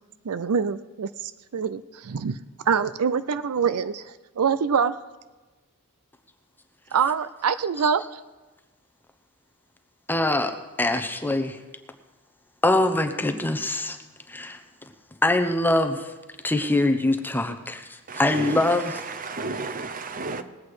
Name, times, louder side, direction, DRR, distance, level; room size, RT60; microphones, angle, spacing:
voice 1, 0.2-2.4 2.7-5.0 6.9-8.0, right 6 dB, 75° right, 0.5 m, -25 dB
voice 2, 10.1-11.6 12.6-14.0 14.3-14.6 15.2-16.1 16.4-18.9, left 2 dB, 10° left, 0.8 m, -23 dB
voice 3, 18.1-20.4, right 3 dB, 40° right, 0.9 m, -33 dB
20.0 x 8.2 x 4.9 m
head